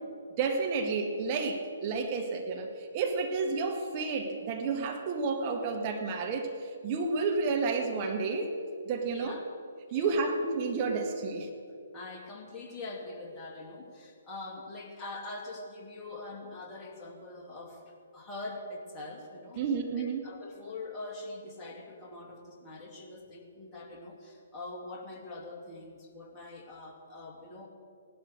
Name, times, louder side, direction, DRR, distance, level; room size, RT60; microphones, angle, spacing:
voice 1, 0.4-8.6 8.8-9.4 9.9-11.5 19.6-20.3, right 4 dB, 30° right, 3 dB, 1.7 m, -31 dB
voice 2, 9.1-9.4 9.9-10.3 11.9-19.6 20.0-27.7, left 2 dB, 20° left, -1 dB, 2.5 m, -43 dB
17.5 x 12.0 x 6.5 m, 2.4 s
figure-of-eight pair, 130°, 0 cm